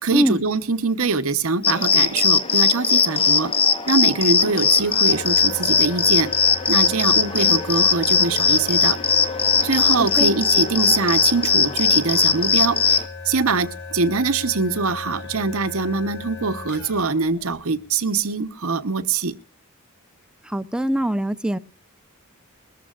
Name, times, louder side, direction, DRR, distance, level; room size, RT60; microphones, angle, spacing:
voice 1, 0.0-3.5 3.9-6.3 6.7-9.0 9.6-19.3, right 4 dB, 65° right, 12 dB, 1.0 m, -23 dB
sound 1, 1.6-13.0, left 5 dB, 25° left, 0.9 m, -19 dB
sound 2, 3.8-18.4, left 4 dB, 50° left, 4.7 m, -37 dB
voice 2, 10.0-10.3 20.4-21.6, equal, 5° right, 13 dB, 0.6 m, -22 dB
21.5 x 14.0 x 2.4 m, 0.37 s
head